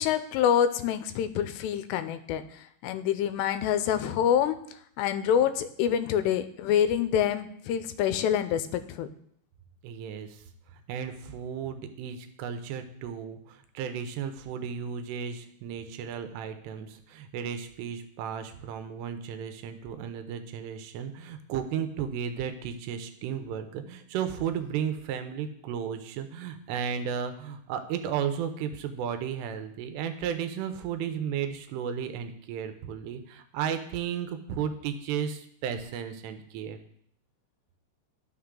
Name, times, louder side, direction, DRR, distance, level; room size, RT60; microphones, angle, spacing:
voice 1, 0.0-9.1, left 9 dB, 85° left, 11 dB, 2.7 m, -26 dB
voice 2, 9.8-10.4 10.7-36.8, right 8 dB, 90° right, 8 dB, 2.9 m, -34 dB
11.5 x 6.3 x 3.7 m, 0.69 s
omnidirectional pair, 4.8 m